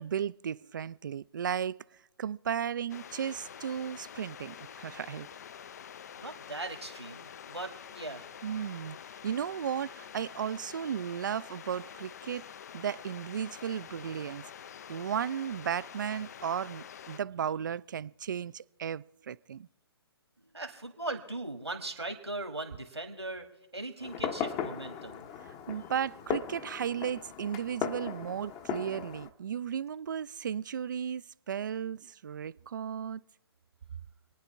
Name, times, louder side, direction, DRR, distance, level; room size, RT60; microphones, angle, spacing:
voice 1, 0.0-1.8 2.2-5.3 8.4-9.0 9.2-12.5 12.7-14.5 14.9-19.7 25.5-33.2, right 8 dB, 50° right, 0.4 m, -35 dB
sound 1, 2.9-17.2, left 8 dB, 40° left, 0.4 m, -47 dB
voice 2, 6.2-8.3 20.5-23.5 23.7-25.2, right 2 dB, 85° right, 2.2 m, -39 dB
Fireworks, 24.0-29.3, left 8 dB, 20° left, 0.7 m, -37 dB
27.5 x 9.8 x 3.4 m
figure-of-eight pair, 130°, 14 cm